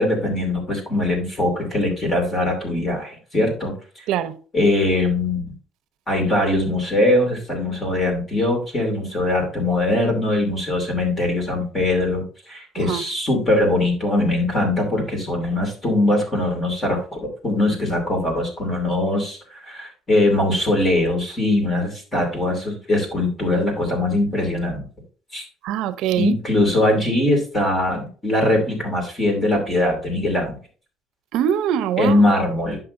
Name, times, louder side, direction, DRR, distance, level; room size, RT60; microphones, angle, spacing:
voice 1, 0.0-3.7 4.5-5.5 6.1-24.8 25.3-25.5 26.2-30.6 32.0-32.8, left 1 dB, 15° left, 2.6 m, -21 dB
voice 2, 25.6-26.4 31.3-32.2, right 10 dB, 65° right, 0.7 m, -23 dB
11.0 x 6.0 x 2.6 m
cardioid pair, 175°, 0 cm